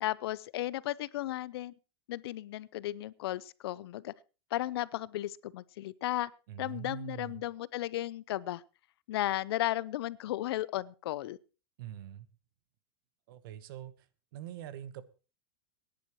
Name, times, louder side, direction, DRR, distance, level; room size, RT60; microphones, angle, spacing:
voice 1, 0.0-1.7 2.1-4.1 4.5-6.3 6.6-8.6 9.1-11.4, left 15 dB, 75° left, 0.5 m, -34 dB
voice 2, 6.5-7.4 11.8-12.3 13.3-14.1 14.3-15.0, right 11 dB, 60° right, 1.1 m, -44 dB
22.0 x 10.5 x 3.0 m
supercardioid pair, 165°, 13 cm